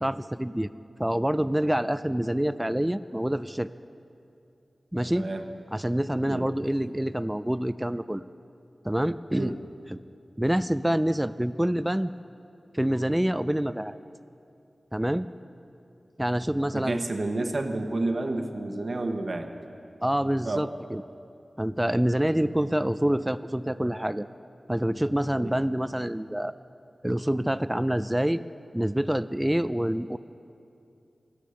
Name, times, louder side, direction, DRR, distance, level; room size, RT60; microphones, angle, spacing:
voice 1, 0.0-0.7 1.0-3.7 4.9-5.3 5.7-8.3 8.8-9.5 9.9-10.0 10.4-12.1 12.7-14.0 14.9-15.3 16.2-17.0 20.0-21.0 21.6-24.3 24.7-26.5 27.0-28.4 28.7-30.2, right 1 dB, 10° right, 13 dB, 0.3 m, -26 dB
voice 2, 5.1-5.5 6.3-6.5 9.4-9.5 16.7-19.5 20.4-20.7 25.4-25.5, right 2 dB, 60° right, 5 dB, 1.0 m, -30 dB
14.0 x 11.5 x 6.9 m, 2.6 s
wide cardioid pair, 55°, 0 cm